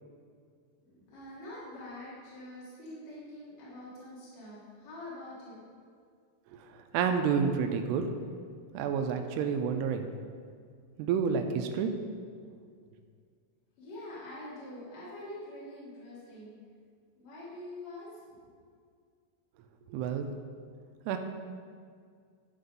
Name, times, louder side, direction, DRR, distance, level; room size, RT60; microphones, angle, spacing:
voice 1, 0.8-5.6 13.8-16.5 17.2-18.1, left 1 dB, 50° left, -8 dB, 2.8 m, -45 dB
voice 2, 6.5-8.1 8.7-10.1 11.0-11.9 19.9-20.3 21.1-21.2, right 6 dB, 85° right, 6 dB, 2.6 m, -29 dB
11.5 x 4.6 x 5.2 m, 2.1 s
omnidirectional pair, 4.9 m